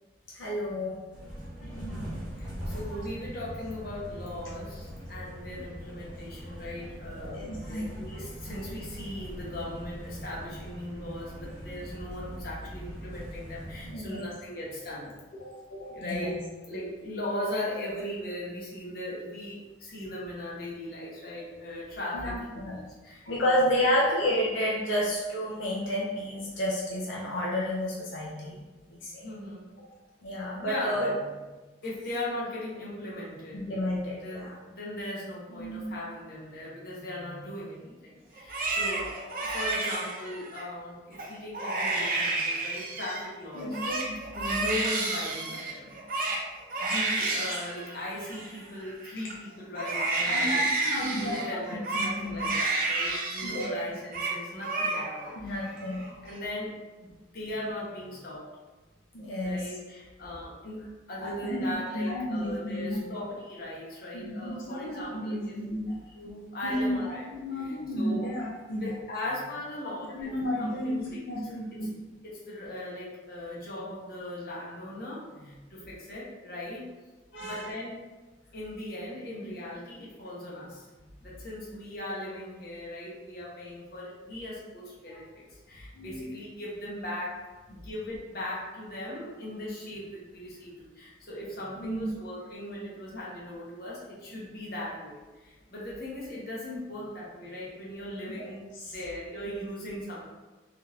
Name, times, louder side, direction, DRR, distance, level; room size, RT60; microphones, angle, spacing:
voice 1, 0.3-1.0 1.6-2.0 7.1-8.0 8.5-8.6 13.8-14.3 15.4-16.3 22.1-22.8 23.2-28.6 28.9-29.3 30.2-31.2 33.5-34.5 35.6-36.0 42.5-42.7 43.5-44.0 44.3-44.6 50.3-51.6 51.9-52.5 53.4-53.9 55.3-56.0 59.1-59.6 61.2-61.7 61.9-63.0 64.1-65.9 66.6-68.9 70.1-71.0 71.3-71.9 77.3-77.7 85.1-85.2 85.9-86.2 91.8-92.1 98.7-98.9, equal, 85° left, -4 dB, 0.6 m, -31 dB
sound 1, 1.1-13.9, equal, 5° right, 0.7 m, -41 dB
voice 2, 2.4-7.4 7.7-15.2 15.9-16.4 16.7-23.9 29.2-29.7 30.6-31.3 31.8-33.7 34.2-39.1 39.5-43.8 44.4-46.0 46.8-50.6 51.1-55.6 56.2-58.5 59.4-65.6 66.1-67.3 67.5-68.3 68.8-70.3 70.6-71.2 72.2-76.9 77.4-78.0 78.5-100.3, left 1 dB, 50° left, -6 dB, 0.9 m, -38 dB
Crying sobbing, 38.4-40.6 41.1-41.3 41.5-43.3 43.6-49.3 49.7-53.7 54.0-54.4 54.6-55.3 55.7-56.3, right 2 dB, 50° right, 0.5 m, -30 dB
3.6 x 2.9 x 2.4 m, 1.2 s
head